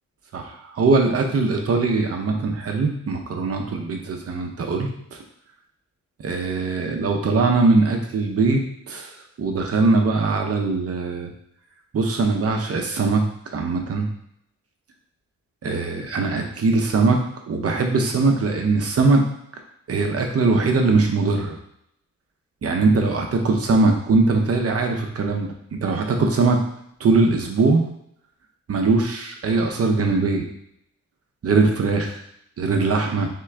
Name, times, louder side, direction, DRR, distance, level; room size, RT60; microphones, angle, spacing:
voice 1, 0.3-5.2 6.2-9.1 9.4-11.3 11.9-13.2 13.5-14.0 15.6-17.2 17.5-19.2 19.9-21.6 22.6-26.6 27.0-27.8 28.7-30.5 31.4-32.2 32.6-33.3, right 3 dB, 50° right, 2 dB, 0.7 m, -21 dB
3.8 x 3.6 x 3.3 m, 0.73 s
wide cardioid pair, 155°, 30 cm